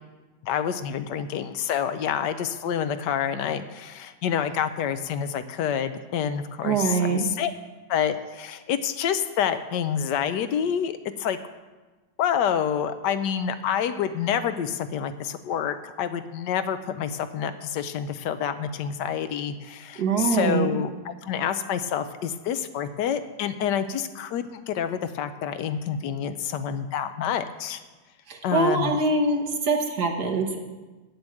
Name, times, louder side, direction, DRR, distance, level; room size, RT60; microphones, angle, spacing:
voice 1, 0.4-7.5 7.9-11.4 12.2-27.8 28.4-29.0, left 8 dB, 80° left, 11 dB, 1.2 m, -28 dB
voice 2, 6.6-7.3 20.0-20.8 28.3-30.6, right 3 dB, 65° right, 1 dB, 1.8 m, -24 dB
9.1 x 7.1 x 7.7 m, 1.2 s
omnidirectional pair, 1.9 m